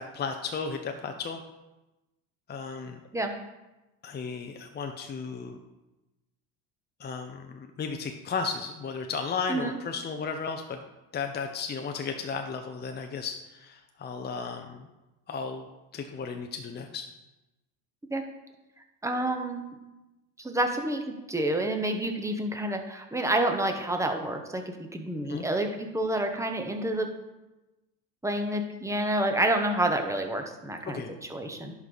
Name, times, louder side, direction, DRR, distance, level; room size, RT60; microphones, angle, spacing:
voice 1, 0.0-1.4 2.5-3.0 4.0-5.6 7.0-10.8 11.1-14.8 15.3-15.7 15.9-17.1 25.3-25.5 30.9-31.1, left 5 dB, 25° left, 4 dB, 0.7 m, -34 dB
voice 2, 19.0-19.6 20.4-27.1 28.2-31.7, right 1 dB, 10° right, 4 dB, 1.1 m, -29 dB
11.0 x 4.7 x 4.0 m, 1.0 s
supercardioid pair, 100°, 39 cm